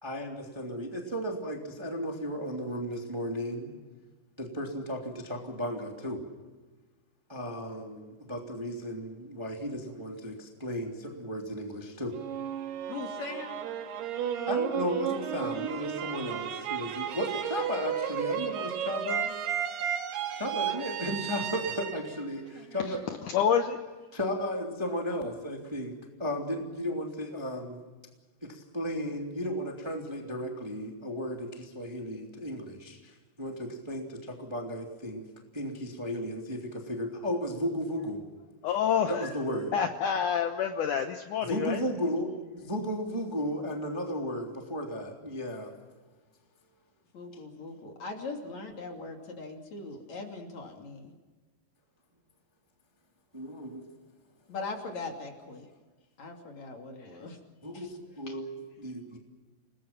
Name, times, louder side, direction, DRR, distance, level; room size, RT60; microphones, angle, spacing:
voice 1, 0.0-3.7 4.4-6.2 7.3-12.2 14.5-19.3 20.3-23.0 24.1-27.8 28.4-35.3 35.5-38.3 39.1-39.7 41.4-45.8 53.3-53.8 57.6-59.2, equal, 10° right, 1 dB, 2.0 m, -34 dB
sound 1, 12.1-23.2, right 9 dB, 70° right, 3.7 m, -33 dB
voice 2, 12.9-13.6 16.0-16.3 20.7-20.8 47.1-51.1 54.5-55.7 56.2-57.4 57.7-58.0, left 3 dB, 45° left, 2 dB, 3.5 m, -40 dB
voice 3, 23.2-23.8 38.6-39.4 39.7-41.8, left 8 dB, 75° left, 6 dB, 1.9 m, -28 dB
29.5 x 20.0 x 5.9 m, 1.3 s
omnidirectional pair, 5.1 m